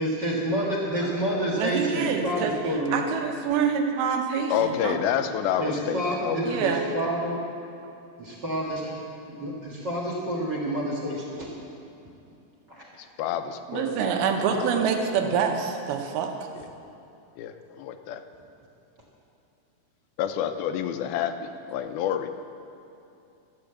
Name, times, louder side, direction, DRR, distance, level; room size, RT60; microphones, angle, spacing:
voice 1, 0.0-3.0 5.6-7.3 8.2-8.9 9.3-11.5 12.7-12.9, right 1 dB, 50° right, -2 dB, 1.3 m, -28 dB
voice 2, 1.6-5.0 6.4-6.8 13.7-16.3, right 6 dB, 85° right, 4 dB, 2.9 m, -26 dB
voice 3, 4.5-6.6 13.2-14.1 14.6-14.7 16.6-16.7 17.4-18.2 20.2-22.3, left 9 dB, 85° left, 8 dB, 2.5 m, -28 dB
14.0 x 8.0 x 7.9 m, 2.6 s
omnidirectional pair, 4.4 m